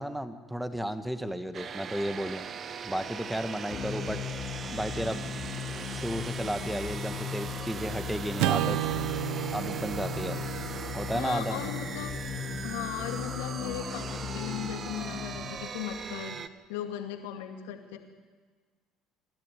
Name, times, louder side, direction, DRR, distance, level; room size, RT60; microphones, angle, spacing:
voice 1, 0.0-2.4 2.8-4.2 4.7-5.3 5.9-8.8 9.5-10.4 10.9-11.6, equal, 5° right, 9 dB, 1.8 m, -33 dB
sound 1, 1.5-16.5, right 6 dB, 45° right, 1.2 m, -40 dB
sound 2, 3.7-15.7, left 9 dB, 50° left, 1.5 m, -38 dB
Acoustic guitar / Strum, 8.4-12.8, right 16 dB, 70° right, 0.8 m, -33 dB
voice 2, 11.1-12.1 12.6-18.0, left 10 dB, 80° left, 4 dB, 2.3 m, -37 dB
28.5 x 12.5 x 9.3 m, 1.5 s
hypercardioid pair, 65°, 0 cm